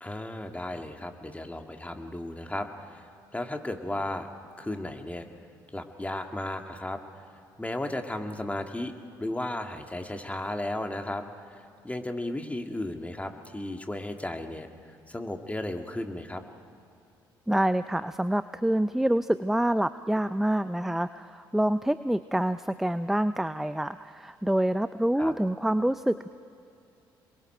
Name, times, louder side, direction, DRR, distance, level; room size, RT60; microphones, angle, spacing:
voice 1, 0.0-3.0 3.3-4.3 4.6-5.3 5.7-7.0 7.6-8.9 9.2-16.4 25.2-25.3, left 1 dB, 15° left, 5 dB, 2.1 m, -34 dB
voice 2, 17.5-26.3, right 1 dB, 5° right, 13 dB, 0.5 m, -26 dB
27.0 x 22.5 x 4.5 m, 2.5 s
hypercardioid pair, 50°, 11 cm